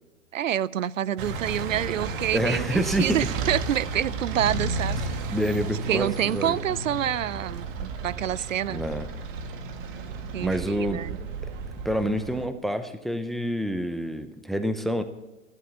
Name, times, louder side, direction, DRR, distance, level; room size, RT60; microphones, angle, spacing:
voice 1, 0.3-5.0 5.9-8.8 10.3-11.2, right 11 dB, 80° right, 0.6 m, -27 dB
sound 1, 1.2-12.5, right 3 dB, 40° right, 1.9 m, -33 dB
voice 2, 2.3-3.2 5.3-6.6 8.7-9.1 10.4-11.0 11.8-15.0, equal, ahead, 0.6 m, -27 dB
14.0 x 11.5 x 7.1 m
hypercardioid pair, 120°, 38 cm